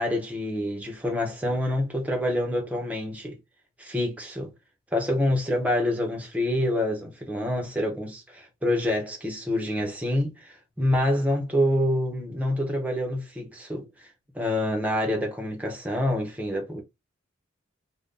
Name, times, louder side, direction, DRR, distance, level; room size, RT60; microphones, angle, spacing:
voice 1, 0.0-3.4 3.8-4.5 4.9-14.1 14.3-16.8, left 1 dB, 5° right, 0.8 m, -27 dB
2.6 x 2.2 x 3.6 m
head